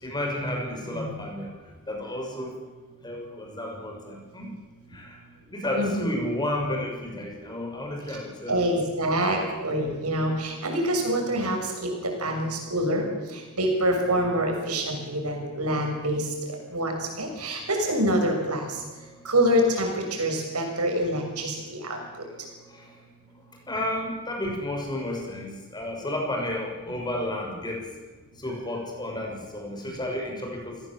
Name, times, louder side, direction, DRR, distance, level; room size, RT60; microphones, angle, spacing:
voice 1, 0.0-1.6 1.9-2.6 3.0-4.5 4.9-5.2 5.5-8.6 11.8-11.9 19.0-19.3 22.6-23.0 23.3-27.9 28.4-30.8, left 1 dB, 20° left, 1 dB, 6.2 m, -32 dB
voice 2, 5.7-6.1 8.5-18.8 19.2-22.2, right 1 dB, 85° right, 2 dB, 6.6 m, -26 dB
28.5 x 17.5 x 7.7 m, 1.3 s
head